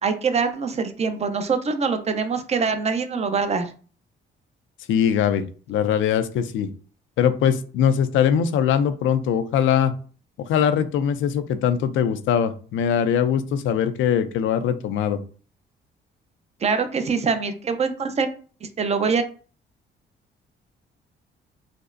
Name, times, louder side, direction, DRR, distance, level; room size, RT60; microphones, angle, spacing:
voice 1, 0.0-3.7 16.6-18.3 18.6-19.2, right 5 dB, 35° right, 8 dB, 0.5 m, -24 dB
voice 2, 4.9-6.7 7.2-9.9 10.5-15.2, left 8 dB, 75° left, 10 dB, 0.5 m, -21 dB
5.1 x 2.0 x 2.5 m, 0.40 s
cardioid pair, 90°, 20 cm